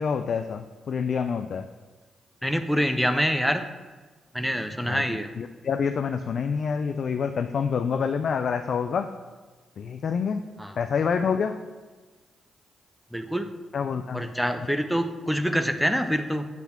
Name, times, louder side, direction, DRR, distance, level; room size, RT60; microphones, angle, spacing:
voice 1, 0.0-1.7 4.8-9.1 9.8-10.4 10.8-11.6 13.7-14.3, left 6 dB, 60° left, 8 dB, 0.3 m, -27 dB
voice 2, 2.4-3.7 4.3-5.3 10.6-10.7 13.1-13.5 14.1-16.5, equal, ahead, 7 dB, 0.7 m, -25 dB
8.2 x 3.4 x 5.8 m, 1.3 s
hypercardioid pair, 45°, 0 cm